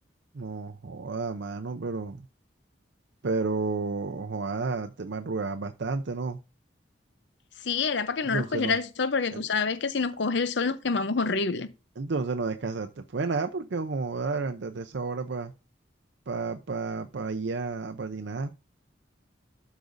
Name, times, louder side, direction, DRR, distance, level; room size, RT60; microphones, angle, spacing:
voice 1, 0.3-2.2 3.2-6.4 8.2-8.8 9.3-9.4 12.0-15.5 16.3-18.5, right 4 dB, 70° right, 0.6 m, -31 dB
voice 2, 7.6-11.7, left 4 dB, 70° left, 0.6 m, -27 dB
13.0 x 5.1 x 2.6 m
head